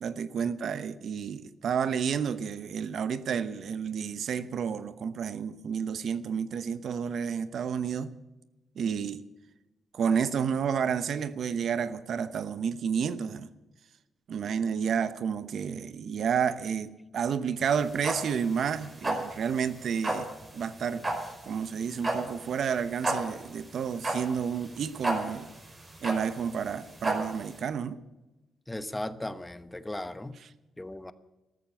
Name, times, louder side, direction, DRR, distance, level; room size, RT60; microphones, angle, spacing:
voice 1, 0.0-8.1 8.8-9.2 9.9-13.5 14.3-20.3 20.5-21.1 21.4-25.5 26.0-28.0 30.4-30.5, right 7 dB, 65° right, 0.9 m, -30 dB
sound 1, 17.6-27.6, right 1 dB, 25° right, 5.4 m, -33 dB
voice 2, 28.7-30.3 30.8-31.1, left 1 dB, 10° left, 1.0 m, -37 dB
13.5 x 13.5 x 7.2 m
cardioid pair, 90°, 0 cm